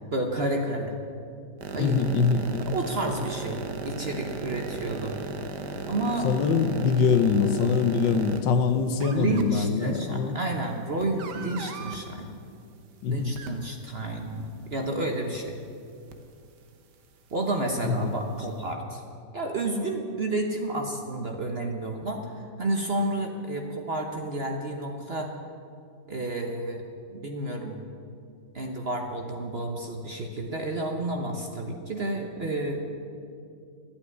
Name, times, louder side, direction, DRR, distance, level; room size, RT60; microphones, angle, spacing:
voice 1, 0.1-0.9 1.7-2.0 2.6-5.1 5.9-6.3 9.1-12.3 13.1-15.6 17.3-19.0 19.3-25.3 26.1-26.8 27.1-27.8 28.5-32.9, right 2 dB, 40° right, 3 dB, 1.0 m, -30 dB
sound 1, 1.6-8.4 9.0-9.4 11.0-12.0 13.4-13.5 16.1-16.2, right 4 dB, 65° right, 1.6 m, -36 dB
voice 2, 1.8-2.7 6.2-10.4 13.0-13.3 17.8-18.2, left 5 dB, 75° left, 9 dB, 1.5 m, -24 dB
12.0 x 8.6 x 9.5 m, 2.4 s
omnidirectional pair, 2.0 m